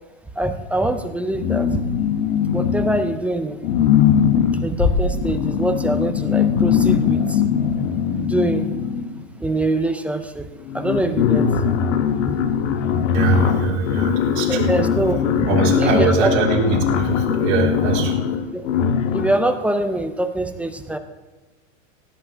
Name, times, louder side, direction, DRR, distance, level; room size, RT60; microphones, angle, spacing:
voice 1, 0.4-1.8 2.5-3.6 4.6-7.4 8.2-8.7 9.4-10.5 10.7-11.6 12.9-13.1 14.5-15.5 15.8-16.3 18.5-18.7 19.1-21.0, right 1 dB, 5° right, 8 dB, 0.4 m, -24 dB
sound 1, 1.4-3.2 3.6-9.3 10.2-10.3 10.6-19.5, left 8 dB, 75° left, 1.6 m, -20 dB
Bass drum, 4.8-6.5, left 4 dB, 45° left, 1.9 m, -25 dB
voice 2, 13.1-14.7 15.5-18.1, right 5 dB, 60° right, -1 dB, 4.0 m, -22 dB
17.0 x 5.8 x 8.9 m, 1.2 s
supercardioid pair, 150°, 38 cm